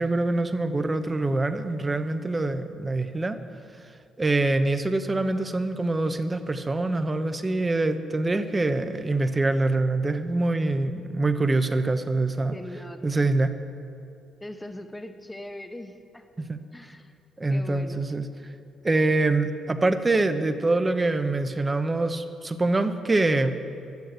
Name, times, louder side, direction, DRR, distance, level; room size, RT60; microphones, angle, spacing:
voice 1, 0.0-3.4 4.2-12.5 13.0-13.5 16.4-16.6 17.4-18.2 18.8-23.5, right 2 dB, 20° right, 9 dB, 0.9 m, -25 dB
voice 2, 12.5-13.0 14.4-16.3 16.7-17.1 17.5-18.0, left 1 dB, 10° left, 7 dB, 1.0 m, -40 dB
11.5 x 10.5 x 8.0 m, 2.6 s
cardioid pair, 90°, 0 cm